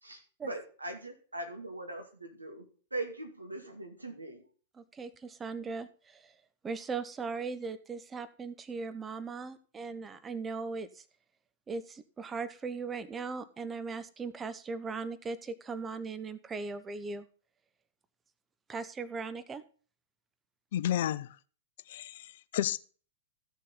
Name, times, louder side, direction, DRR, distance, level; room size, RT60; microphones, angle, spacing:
voice 1, 0.0-2.7 2.9-4.4, right 2 dB, 90° right, 2.2 m, -41 dB
voice 2, 4.7-6.4 6.6-11.0 11.7-17.3 18.7-19.6, right 4 dB, 15° right, 0.8 m, -38 dB
voice 3, 20.7-21.4 21.9-22.8, left 11 dB, 55° left, 0.5 m, -32 dB
14.5 x 6.6 x 4.0 m
figure-of-eight pair, 100°, 0 cm